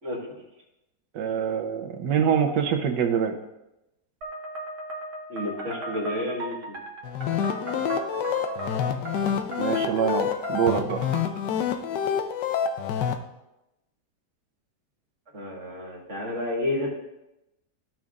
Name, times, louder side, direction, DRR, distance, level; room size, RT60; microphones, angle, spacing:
voice 1, 0.0-0.3 5.3-6.8 15.3-16.9, left 1 dB, 45° right, -2 dB, 2.0 m, -31 dB
voice 2, 1.1-3.3 9.6-11.0, right 8 dB, 85° right, 5 dB, 1.5 m, -25 dB
sound 1, 4.2-11.4, right 2 dB, 70° right, 1.6 m, -37 dB
sound 2, 7.0-13.2, left 8 dB, 85° left, 1.3 m, -27 dB
14.0 x 5.9 x 2.5 m, 0.92 s
omnidirectional pair, 1.8 m